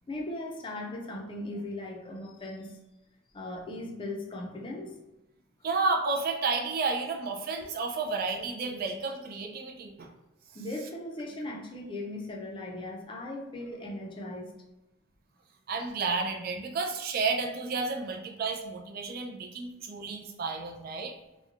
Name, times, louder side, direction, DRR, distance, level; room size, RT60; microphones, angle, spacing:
voice 1, 0.1-2.8 3.3-5.0 10.5-14.6, left 1 dB, 25° left, 0 dB, 0.4 m, -38 dB
voice 2, 5.6-10.1 15.7-21.2, right 4 dB, 50° right, 3 dB, 0.4 m, -31 dB
3.0 x 2.1 x 2.4 m, 0.97 s
head